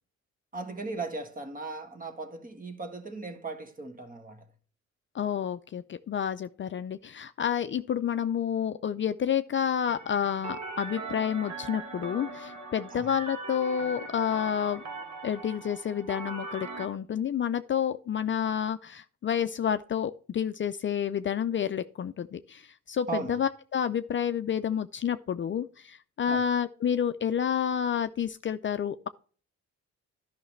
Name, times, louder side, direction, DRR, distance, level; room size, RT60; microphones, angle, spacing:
voice 1, 0.5-4.4 12.9-13.1 23.1-23.4 26.3-26.4, right 3 dB, 30° right, 1.7 m, -37 dB
voice 2, 5.1-14.8 15.2-29.1, left 8 dB, 40° left, 0.5 m, -29 dB
sound 1, 9.9-16.9, right 3 dB, 65° right, 1.7 m, -40 dB
11.0 x 5.9 x 3.2 m
cardioid pair, 90°, 30 cm